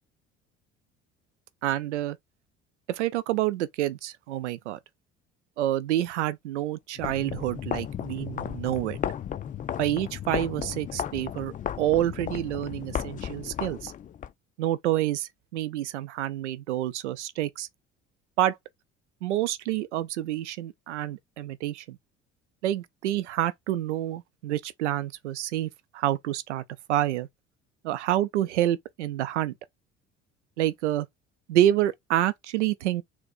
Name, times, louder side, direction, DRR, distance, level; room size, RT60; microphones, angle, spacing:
voice 1, 1.6-2.2 2.9-4.8 5.6-9.0 9.8-13.9 14.6-17.7 18.4-18.6 19.2-22.0 22.6-26.6 26.9-27.3 27.8-29.5 30.6-31.1 31.5-33.0, right 13 dB, 80° right, 0.5 m, -28 dB
sound 1, 7.0-14.3, left 9 dB, 25° left, 0.4 m, -34 dB
4.1 x 2.2 x 4.0 m
figure-of-eight pair, 55°, 35 cm